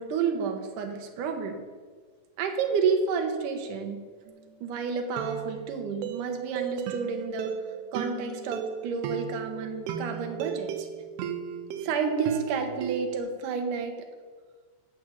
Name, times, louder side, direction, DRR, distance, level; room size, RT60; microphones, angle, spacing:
voice 1, 0.0-1.6 2.4-4.0 4.6-7.6 7.9-10.9 11.8-14.0, right 5 dB, 65° right, 4 dB, 2.5 m, -30 dB
sound 1, 4.3-4.5 5.2-13.2, right 8 dB, 85° right, 2.9 m, -36 dB
12.5 x 6.6 x 8.5 m, 1.5 s
omnidirectional pair, 4.6 m